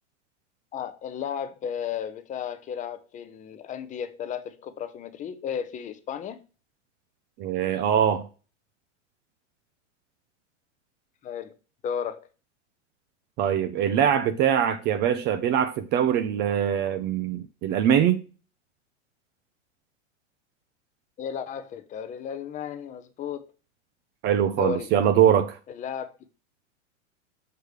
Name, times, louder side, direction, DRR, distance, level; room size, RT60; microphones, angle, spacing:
voice 1, 0.7-6.4 11.2-11.5 11.8-12.3 21.2-23.5 24.6-24.9 25.7-26.1, left 8 dB, 20° left, 0.6 m, -34 dB
voice 2, 7.4-8.2 13.4-18.2 24.2-25.6, right 9 dB, 30° right, 0.5 m, -23 dB
6.7 x 3.2 x 4.9 m
hypercardioid pair, 125°, 37 cm